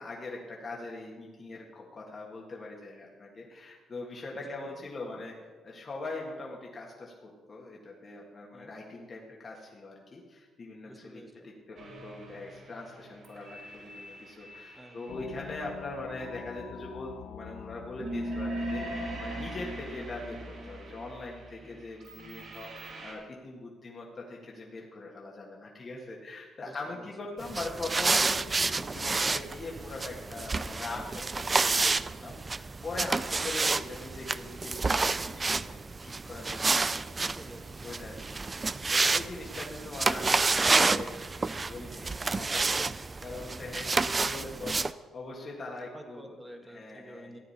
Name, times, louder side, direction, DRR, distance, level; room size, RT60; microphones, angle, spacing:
voice 1, 0.0-5.3 5.6-37.0 37.8-46.3 46.7-47.4, left 2 dB, 40° left, -2 dB, 1.8 m, -42 dB
voice 2, 4.3-5.2 8.5-8.7 10.8-11.5 14.7-15.1 21.6-21.8 26.6-27.1 32.2-32.4 37.2-38.1 43.8-44.2 45.9-47.4, right 1 dB, 10° right, 4 dB, 1.6 m, -50 dB
sound 1, 11.8-15.3 18.0-23.1, right 1 dB, 65° right, 3.7 m, -40 dB
sound 2, 15.1-20.9, left 8 dB, 75° left, 0.6 m, -47 dB
sound 3, 27.4-44.9, right 3 dB, 25° right, 0.4 m, -29 dB
14.5 x 9.3 x 4.3 m, 1.4 s
cardioid pair, 90°, 0 cm